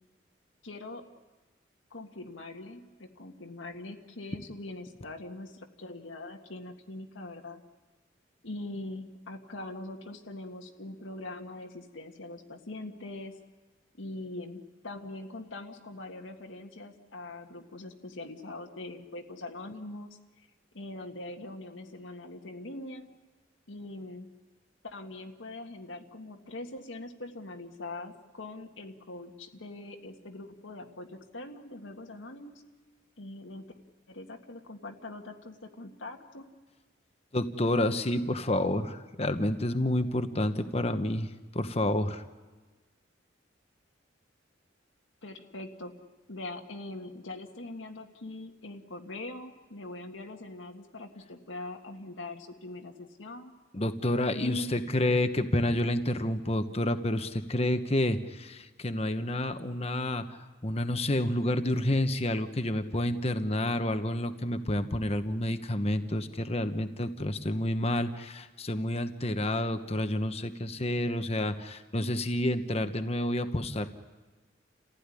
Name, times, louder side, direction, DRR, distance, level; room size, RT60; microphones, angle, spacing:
voice 1, 0.6-1.0 1.9-7.6 8.4-13.3 14.0-20.2 20.7-23.1 23.7-24.3 24.8-32.6 33.2-33.7 34.1-36.4 45.2-45.9 46.3-53.5 54.3-54.7, left 2 dB, 85° left, 2 dB, 1.8 m, -42 dB
voice 2, 37.3-42.2 53.7-73.9, left 1 dB, 35° left, 9 dB, 1.1 m, -29 dB
29.0 x 15.5 x 9.9 m, 1.3 s
head